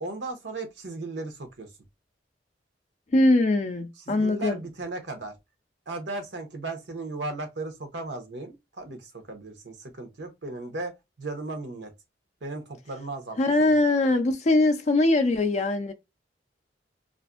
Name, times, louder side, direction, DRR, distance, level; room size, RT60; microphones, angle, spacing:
voice 1, 0.0-1.7 4.1-5.3 5.9-10.9 11.2-11.9 12.4-13.7, right 2 dB, 70° right, 0.8 m, -36 dB
voice 2, 3.1-4.6 13.4-15.9, left 2 dB, 40° left, 0.4 m, -22 dB
2.5 x 2.5 x 2.4 m
head